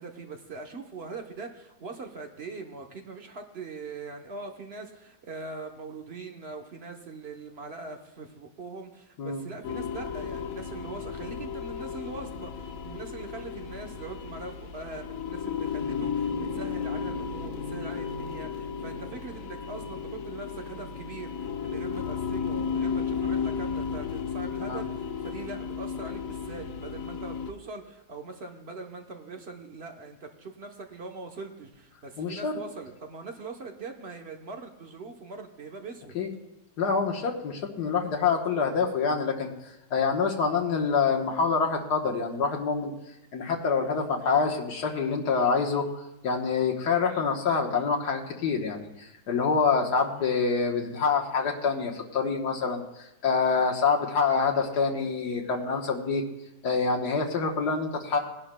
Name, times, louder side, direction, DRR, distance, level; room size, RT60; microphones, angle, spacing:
voice 1, 0.0-36.2, right 3 dB, 45° right, 3 dB, 1.1 m, -42 dB
sound 1, 9.6-27.5, left 6 dB, 65° left, 1.1 m, -34 dB
voice 2, 32.2-32.5 36.1-36.3 36.8-42.9 43.3-56.2 56.6-58.2, left 5 dB, 85° left, 1 dB, 1.8 m, -26 dB
20.0 x 11.0 x 2.2 m, 0.94 s
omnidirectional pair, 1.7 m